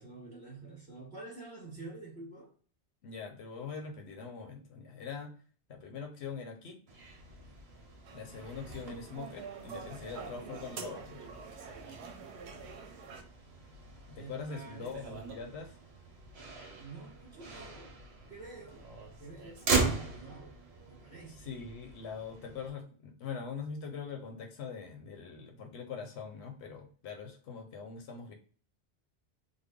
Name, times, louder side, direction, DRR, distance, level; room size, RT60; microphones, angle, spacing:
voice 1, 0.0-2.5 14.2-15.3 16.3-18.0 18.3-18.9 19.2-20.5 20.8-21.5, right 3 dB, 5° left, -8 dB, 1.0 m, -48 dB
voice 2, 3.0-5.3 5.7-6.8 8.1-11.2 14.1-15.8 21.4-28.3, left 5 dB, 85° left, 4 dB, 0.9 m, -43 dB
Motor vehicle (road), 6.9-22.7, right 4 dB, 65° right, 1.0 m, -40 dB
sound 1, 8.1-13.2, right 6 dB, 90° right, 0.9 m, -46 dB
3.3 x 2.1 x 3.5 m, 0.41 s
omnidirectional pair, 1.1 m